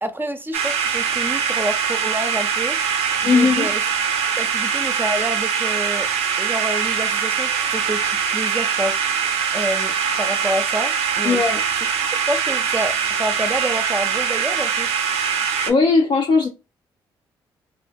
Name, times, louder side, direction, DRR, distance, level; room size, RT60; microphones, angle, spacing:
voice 1, 0.0-2.8 3.2-3.8 4.4-6.1 6.4-9.0 9.5-11.4 12.3-15.0, right 1 dB, 20° right, 0.5 m, -28 dB
sound 1, 0.5-15.7, right 7 dB, 75° right, 0.4 m, -22 dB
voice 2, 3.2-3.7 11.2-11.6 15.7-16.5, left 4 dB, 50° left, 0.4 m, -17 dB
2.5 x 2.1 x 2.5 m
hypercardioid pair, 45°, 11 cm